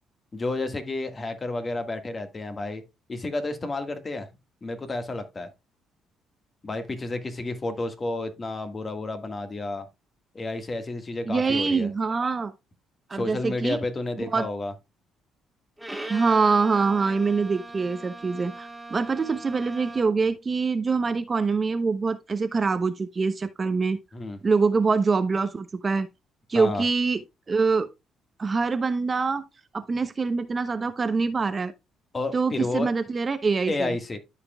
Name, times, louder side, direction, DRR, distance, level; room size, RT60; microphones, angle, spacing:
voice 1, 0.3-2.8 3.1-4.3 4.6-5.5 6.6-9.9 10.3-11.9 13.1-14.7 24.1-24.4 26.5-26.8 32.1-32.9 33.7-34.2, left 2 dB, 30° left, 1.6 m, -31 dB
voice 2, 11.3-12.5 13.1-13.8 14.3-14.5 16.1-24.0 24.4-26.1 26.5-27.2 27.5-27.9 28.4-29.4 29.7-31.7 32.3-34.0, right 4 dB, 35° right, 0.8 m, -24 dB
Bowed string instrument, 15.8-20.3, right 2 dB, ahead, 1.8 m, -40 dB
13.0 x 5.1 x 2.3 m
supercardioid pair, 70°, 0 cm